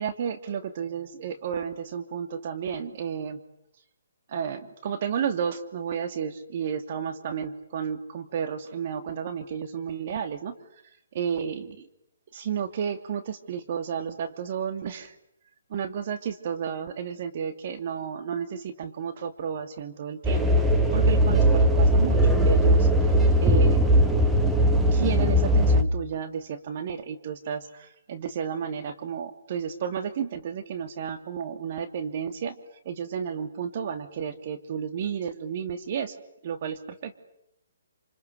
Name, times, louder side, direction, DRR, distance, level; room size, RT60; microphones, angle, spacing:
voice 1, 0.0-3.4 4.3-10.5 11.1-11.8 12.3-15.2 15.7-20.5 20.9-23.8 24.9-32.6 32.8-36.2 36.4-37.2, right 7 dB, 45° right, 9 dB, 2.7 m, -32 dB
sound 1, 20.2-25.8, equal, 5° right, 1.9 m, -19 dB
29.5 x 28.0 x 6.8 m, 0.78 s
hypercardioid pair, 150°, 0 cm